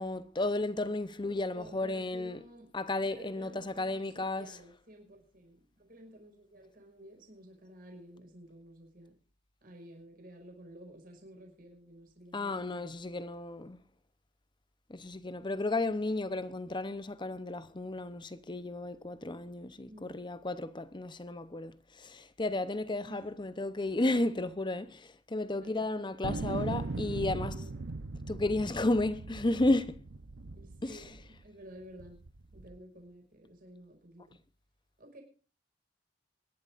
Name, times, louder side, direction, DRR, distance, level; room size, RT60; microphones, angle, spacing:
voice 1, 0.0-2.4 2.7-4.5 12.3-13.8 14.9-27.5 28.3-30.0 30.8-31.0, left 2 dB, 25° left, 0.8 m, -33 dB
voice 2, 1.5-2.7 3.0-9.1 9.6-12.6 19.9-20.1 23.0-23.3 25.5-25.9 27.1-27.7 30.5-32.2 32.5-34.4 35.0-35.2, right 1 dB, 50° right, 5.5 m, -52 dB
sound 1, 26.2-31.4 32.0-32.8, right 3 dB, 80° right, 0.7 m, -39 dB
25.5 x 11.5 x 2.5 m
head